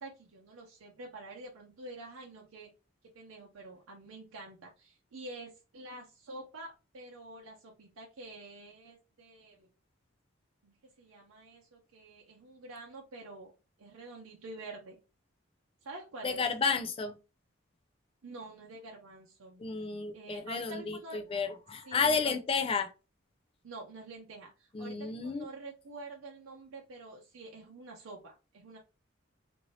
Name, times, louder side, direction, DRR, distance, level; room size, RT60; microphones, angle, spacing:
voice 1, 0.0-2.7 3.1-9.7 10.6-13.5 13.8-15.0 15.8-16.5 18.2-19.6 20.1-21.2 21.8-22.4 23.6-28.8, right 2 dB, 85° right, 0.6 m, -47 dB
voice 2, 16.2-17.2 19.6-22.9 24.7-25.4, left 5 dB, 25° left, 0.3 m, -32 dB
2.7 x 2.6 x 3.0 m
head